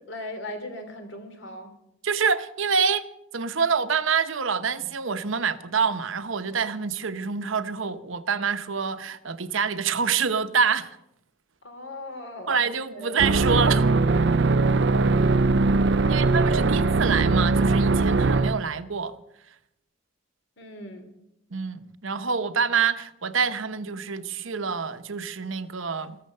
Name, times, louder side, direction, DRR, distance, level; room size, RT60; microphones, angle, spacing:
voice 1, 0.0-1.7 11.6-13.7 16.0-17.0 20.6-21.2, left 1 dB, 65° left, 3.1 m, -39 dB
voice 2, 2.0-11.0 12.5-13.8 16.1-19.1 21.5-26.2, right 6 dB, 75° right, 1.0 m, -26 dB
sound 1, 13.2-18.6, right 3 dB, 55° right, 0.5 m, -21 dB
14.5 x 13.5 x 6.6 m
head